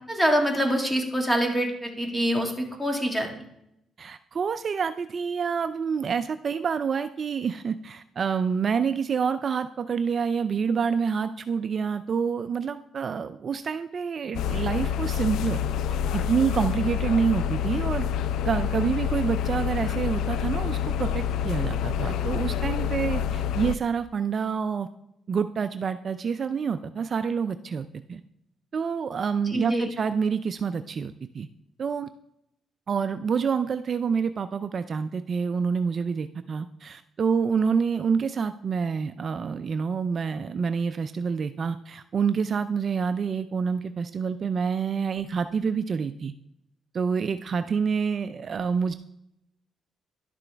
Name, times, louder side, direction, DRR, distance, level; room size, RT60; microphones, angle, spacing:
voice 1, 0.1-3.3 29.5-29.9, equal, ahead, 2 dB, 1.7 m, -25 dB
voice 2, 4.0-15.6 16.1-18.0 18.4-24.9 25.3-28.2 28.7-31.5 31.8-32.1 32.9-46.3 46.9-48.9, right 6 dB, 45° right, 11 dB, 0.3 m, -27 dB
sound 1, 14.3-23.8, left 8 dB, 80° left, 0.3 m, -27 dB
11.5 x 6.0 x 3.4 m, 0.80 s
cardioid pair, 90°, 0 cm